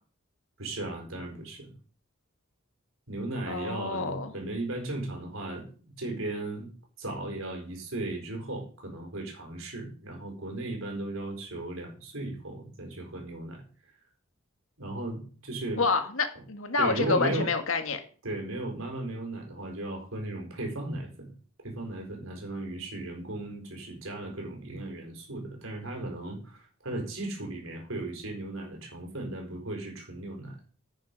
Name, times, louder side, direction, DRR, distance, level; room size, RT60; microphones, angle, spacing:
voice 1, 0.6-1.7 3.1-6.7 7.0-13.6 14.8-15.8 16.3-16.4 16.8-17.5 18.2-21.3 21.6-30.6, right 2 dB, 75° right, 2 dB, 4.7 m, -36 dB
voice 2, 3.5-4.3 15.8-18.0, left 4 dB, 70° left, 7 dB, 1.9 m, -28 dB
10.0 x 9.2 x 5.3 m, 0.41 s
head